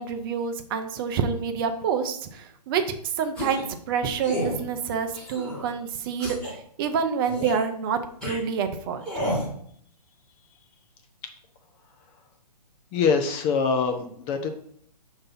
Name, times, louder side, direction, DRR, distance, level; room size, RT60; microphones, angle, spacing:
voice 1, 0.0-2.8 3.2-9.3, right 6 dB, 35° right, 7 dB, 0.6 m, -28 dB
sound 1, 3.3-3.7 4.2-4.6 5.1-5.7 6.2-6.5 7.3-7.6 8.2-8.4 9.0-9.5, equal, 5° left, 2.6 m, -31 dB
voice 2, 12.9-14.5, left 5 dB, 25° left, 5 dB, 0.6 m, -24 dB
6.4 x 3.0 x 5.6 m, 0.63 s
hypercardioid pair, 135°, 21 cm